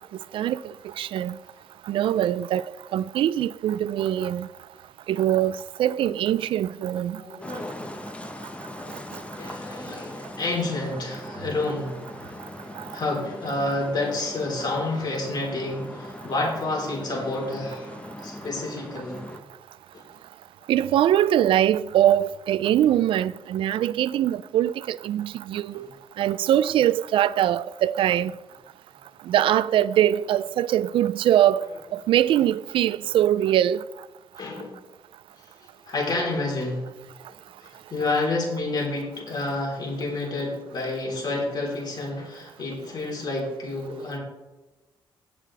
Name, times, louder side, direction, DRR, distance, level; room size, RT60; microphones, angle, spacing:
voice 1, 1.0-1.4 1.9-2.6 2.9-4.5 5.1-7.2 12.8-12.9 20.7-25.9 26.2-28.3 29.3-31.7 31.9-33.8, right 11 dB, 80° right, 0.4 m, -22 dB
voice 2, 7.2-8.0 9.3-11.9 12.9-17.9 18.2-19.2 19.9-20.0 25.7-25.9 34.4-34.8 35.9-36.8 37.6-44.2, left 2 dB, 55° left, 3.9 m, -29 dB
sound 1, 7.4-19.4, left 1 dB, 15° left, 1.1 m, -40 dB
17.5 x 6.1 x 3.4 m
cardioid pair, 100°, 9 cm